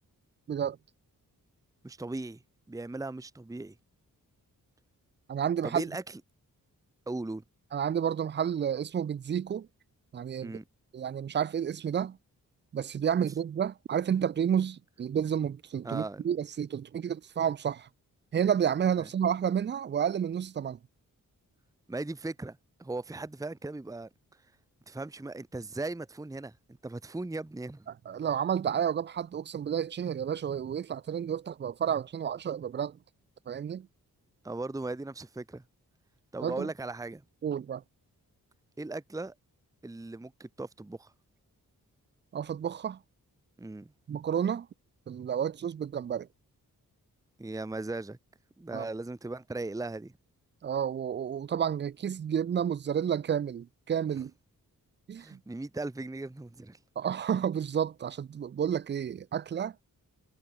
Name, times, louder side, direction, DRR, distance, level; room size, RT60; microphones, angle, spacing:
voice 1, 1.8-2.4 2.7-3.7 5.6-6.0 7.1-7.4 10.4-10.6 15.8-16.2 19.0-19.1 21.9-24.1 24.9-26.6 26.8-27.9 34.4-35.6 36.3-37.2 38.8-39.3 39.8-41.1 43.6-43.9 47.4-48.2 48.6-50.1 55.2-56.8, right 2 dB, 10° right, 0.8 m, -38 dB
voice 2, 5.3-5.9 7.7-9.7 10.1-10.6 10.9-12.2 12.7-17.9 18.3-20.8 28.1-33.0 33.5-33.9 36.4-36.7 37.4-37.8 42.3-43.0 44.1-44.7 45.1-46.3 48.7-48.9 50.6-54.3 55.1-55.4 57.0-59.7, right 8 dB, 30° right, 0.4 m, -30 dB
cardioid pair, 45°, 37 cm